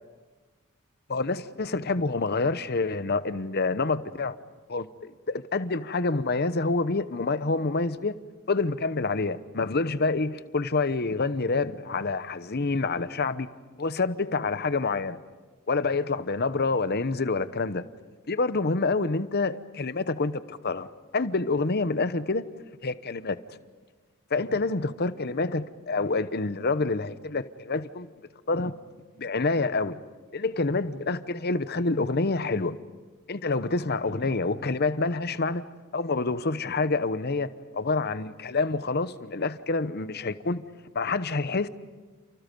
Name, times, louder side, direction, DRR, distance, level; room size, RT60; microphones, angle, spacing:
voice 1, 1.1-4.3 4.7-8.1 8.5-13.5 13.8-15.2 15.7-17.8 18.3-20.9 21.1-22.5 22.8-23.4 24.3-28.1 28.5-28.7 29.2-30.0 30.3-32.8 33.3-35.6 35.9-40.6 40.9-41.7, left 3 dB, 45° left, 0.9 m, -27 dB
29.5 x 29.5 x 5.3 m
head